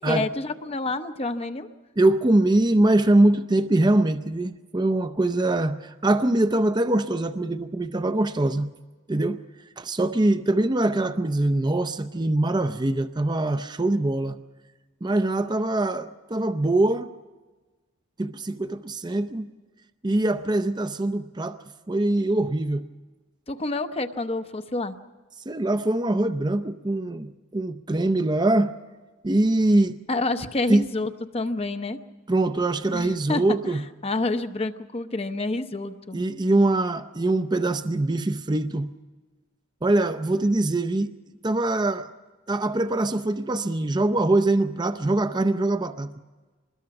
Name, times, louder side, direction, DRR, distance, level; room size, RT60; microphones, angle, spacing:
voice 1, 0.0-1.7 23.5-24.9 30.1-32.0 32.9-36.2, left 2 dB, 30° left, 0.8 m, -28 dB
voice 2, 2.0-8.7 9.1-9.4 9.8-14.4 15.0-17.1 18.2-19.5 20.0-21.6 21.9-22.9 25.5-28.7 29.2-30.0 30.7-30.8 32.3-33.8 36.1-38.9 39.8-41.1 41.4-42.1 42.5-46.1, right 2 dB, 20° right, 0.6 m, -23 dB
25.0 x 21.0 x 6.0 m
head